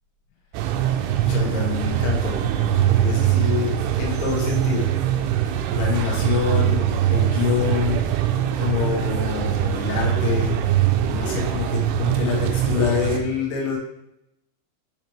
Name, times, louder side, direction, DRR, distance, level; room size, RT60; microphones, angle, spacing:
sound 1, 0.5-13.2, right 11 dB, 90° right, 2.9 m, -22 dB
voice 1, 1.2-5.0 5.7-8.3 8.6-10.6 11.1-13.8, left 8 dB, 85° left, -3 dB, 3.8 m, -26 dB
8.5 x 3.2 x 4.6 m, 0.83 s
omnidirectional pair, 5.2 m